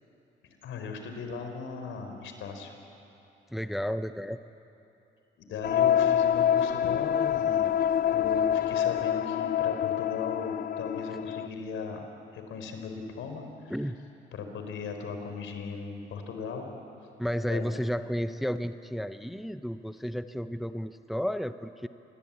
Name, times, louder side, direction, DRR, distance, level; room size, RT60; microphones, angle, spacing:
voice 1, 0.6-2.7 5.4-7.7 8.1-12.1 12.3-13.9 14.3-16.7 17.5-17.6, left 5 dB, 80° left, 5 dB, 4.0 m, -38 dB
voice 2, 3.5-4.4 13.7-14.0 17.2-21.9, equal, ahead, 10 dB, 0.8 m, -32 dB
sound 1, 5.6-11.5, left 9 dB, 50° left, 0.6 m, -26 dB
27.5 x 21.0 x 8.7 m, 2.8 s
cardioid pair, 90°, 20 cm